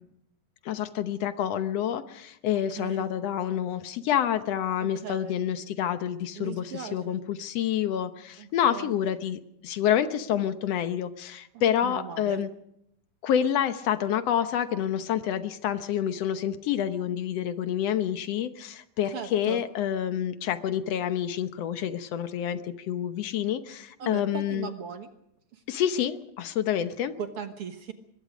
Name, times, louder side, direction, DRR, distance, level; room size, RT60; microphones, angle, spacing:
voice 1, 0.6-12.5 13.2-24.7 25.7-27.1, left 10 dB, 65° left, 10 dB, 1.6 m, -28 dB
voice 2, 2.5-3.1 4.8-5.4 6.3-7.2 8.4-8.9 11.8-12.4 19.1-19.6 24.0-25.1 25.5-25.6 27.2-27.9, right 7 dB, 55° right, 7 dB, 1.7 m, -38 dB
24.0 x 22.0 x 5.1 m, 0.78 s
omnidirectional pair, 3.9 m